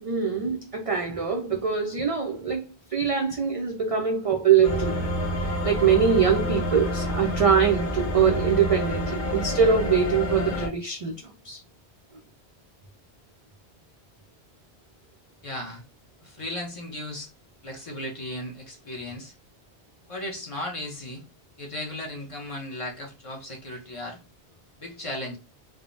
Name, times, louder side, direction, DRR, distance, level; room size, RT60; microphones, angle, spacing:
voice 1, 0.0-2.6 2.9-5.0 5.4-11.6, right 6 dB, 65° right, 0.3 m, -23 dB
sound 1, 4.6-10.7, left 1 dB, 80° left, 1.1 m, -28 dB
voice 2, 15.4-15.8 16.2-17.3 17.6-19.3 20.1-21.2 21.6-24.2 24.8-25.4, left 1 dB, 35° left, 0.6 m, -36 dB
3.4 x 2.0 x 2.5 m
omnidirectional pair, 1.1 m